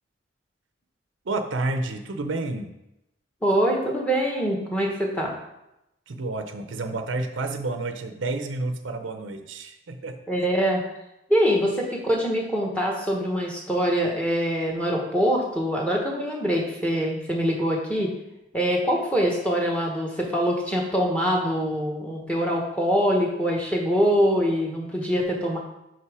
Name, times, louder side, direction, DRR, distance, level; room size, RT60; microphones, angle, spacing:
voice 1, 1.3-2.7 6.1-10.2, right 2 dB, 75° right, 7 dB, 0.6 m, -30 dB
voice 2, 3.4-5.3 10.3-10.8 11.3-18.1 18.5-25.6, equal, 5° left, -1 dB, 1.1 m, -24 dB
5.7 x 5.4 x 4.8 m, 0.88 s
head